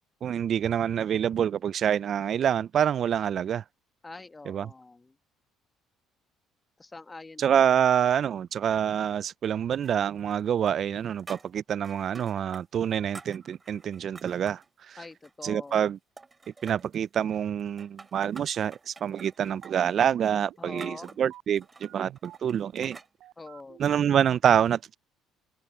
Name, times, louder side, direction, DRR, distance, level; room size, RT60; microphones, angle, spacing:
voice 1, 0.2-3.6 4.5-4.7 7.4-14.6 14.9-15.0 15.4-16.0 16.6-23.0 23.8-25.0, right 9 dB, 55° right, 0.3 m, -26 dB
voice 2, 4.0-5.1 6.8-7.8 15.0-15.9 20.6-21.2 23.4-23.9, left 3 dB, 20° left, 1.6 m, -45 dB
sound 1, 9.8-10.4 10.7-12.6 12.9-14.7 15.1-15.9 16.2-17.0 17.6-23.1, right 3 dB, 25° right, 3.1 m, -49 dB
sound 2, 19.2-24.4, right 14 dB, 70° right, 5.5 m, -50 dB
open air
supercardioid pair, 85°, 0 cm